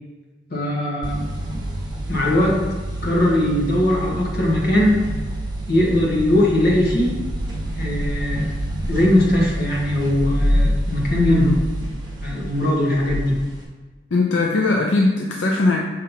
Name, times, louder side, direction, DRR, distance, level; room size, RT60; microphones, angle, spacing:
voice 1, 0.5-1.2 2.1-2.6 3.0-5.0 5.7-7.2 7.8-8.5 8.9-11.5 12.2-13.4, left 1 dB, 50° left, -3 dB, 1.4 m, -20 dB
sound 1, 1.0-13.6, equal, 20° right, 1.2 m, -26 dB
voice 2, 11.3-11.7 14.1-15.8, left 2 dB, 75° left, 0 dB, 0.5 m, -20 dB
6.3 x 2.8 x 5.6 m, 1.2 s
head